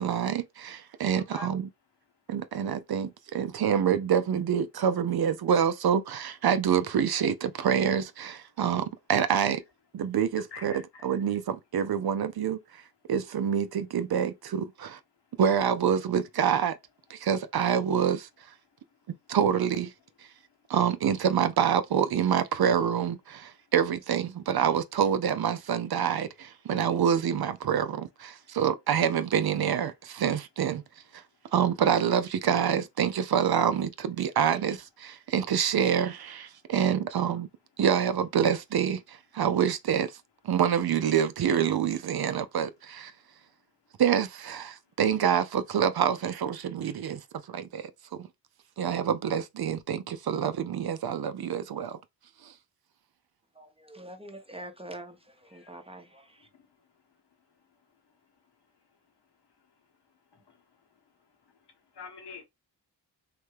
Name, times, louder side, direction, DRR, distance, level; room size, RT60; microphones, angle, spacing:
voice 1, 0.0-1.7 2.3-9.6 9.9-10.7 11.0-12.6 13.1-15.0 15.4-16.7 17.1-18.3 19.1-19.9 20.7-30.8 31.5-37.5 37.8-40.1 40.4-43.1 44.0-47.2 47.5-47.9 48.2-48.3 48.8-52.0 52.4-52.5, right 8 dB, 60° right, 0.5 m, -26 dB
voice 2, 1.2-1.5 10.5-11.1 20.5-20.6 28.4-28.5 55.5-55.8 56.5-56.9 58.1-58.2 59.6-59.7 60.3-60.9 61.2-62.4, left 5 dB, 65° left, 1.1 m, -48 dB
voice 3, 53.5-56.5, right 1 dB, 15° right, 0.7 m, -45 dB
3.2 x 2.2 x 3.2 m
cardioid pair, 50°, 43 cm